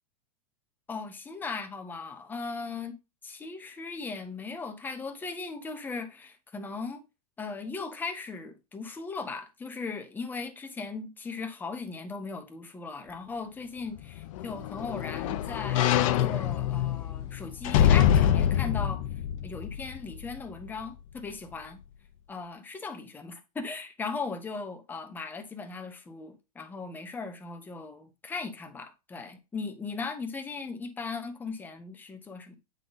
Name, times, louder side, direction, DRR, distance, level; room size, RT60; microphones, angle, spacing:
voice 1, 0.9-2.9 3.2-7.0 7.4-19.0 19.4-21.8 22.3-32.5, left 4 dB, 10° left, 0.7 m, -38 dB
sound 1, 14.0-20.4 20.8-20.9, left 10 dB, 55° left, 0.7 m, -25 dB
8.2 x 3.9 x 3.9 m
supercardioid pair, 155°, 20 cm